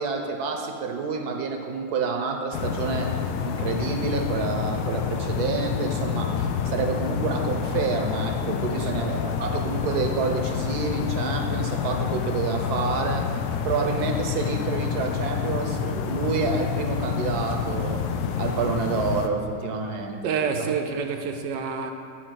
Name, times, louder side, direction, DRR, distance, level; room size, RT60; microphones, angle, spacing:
voice 1, 0.0-3.1 3.4-13.3 13.6-18.0 18.4-20.7, right 5 dB, 70° right, 4 dB, 1.1 m, -28 dB
sound 1, 2.5-19.3, left 7 dB, 75° left, 1.0 m, -28 dB
voice 2, 8.7-9.0 20.2-21.9, right 6 dB, 85° right, 5 dB, 1.4 m, -28 dB
10.5 x 4.1 x 6.3 m, 2.7 s
omnidirectional pair, 1.9 m